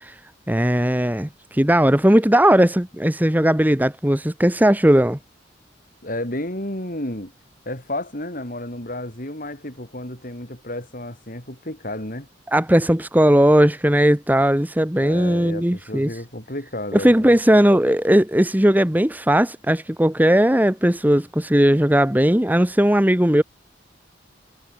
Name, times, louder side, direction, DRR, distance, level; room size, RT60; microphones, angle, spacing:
voice 1, 0.5-5.2 12.5-16.1 16.9-23.4, right 1 dB, 10° right, 1.2 m, -17 dB
voice 2, 6.0-7.3 7.7-12.3 15.0-17.3, left 1 dB, 45° left, 6.1 m, -32 dB
head